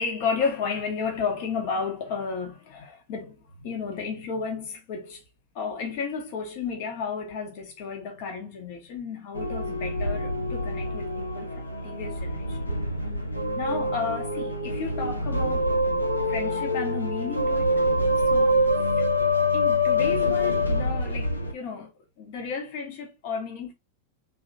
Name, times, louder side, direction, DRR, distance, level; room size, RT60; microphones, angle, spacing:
voice 1, 0.0-5.2 5.5-12.8 13.5-15.7 16.3-17.7 18.3-19.1 19.5-21.9 22.2-23.7, left 5 dB, 50° left, 1.1 m, -33 dB
sound 1, 9.3-21.5, left 1 dB, 85° left, 0.7 m, -25 dB
3.5 x 3.0 x 2.7 m
figure-of-eight pair, 90°, 0 cm